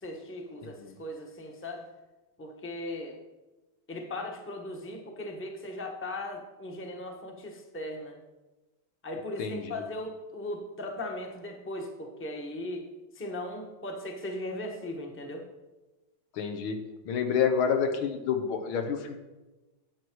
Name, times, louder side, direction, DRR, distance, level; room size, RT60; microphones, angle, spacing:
voice 1, 0.0-1.8 2.4-3.2 3.9-8.2 9.0-12.9 13.1-15.4, left 1 dB, 10° left, 1 dB, 0.8 m, -38 dB
voice 2, 9.4-9.7 16.3-16.8 17.1-19.2, left 7 dB, 85° left, 6 dB, 1.8 m, -28 dB
9.6 x 8.0 x 4.7 m, 1.1 s
omnidirectional pair, 2.2 m